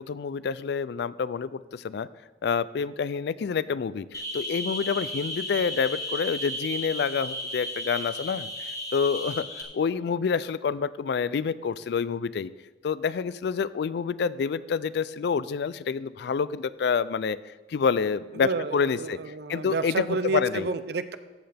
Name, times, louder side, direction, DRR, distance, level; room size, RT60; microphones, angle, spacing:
voice 1, 0.0-2.1 2.4-8.5 8.9-12.5 12.8-19.2 19.5-20.7, left 6 dB, 65° left, 17 dB, 0.4 m, -28 dB
sound 1, 4.1-9.6, equal, 20° left, 1.0 m, -34 dB
voice 2, 18.3-21.2, right 3 dB, 65° right, 12 dB, 0.6 m, -30 dB
14.5 x 7.9 x 3.5 m, 1.2 s
head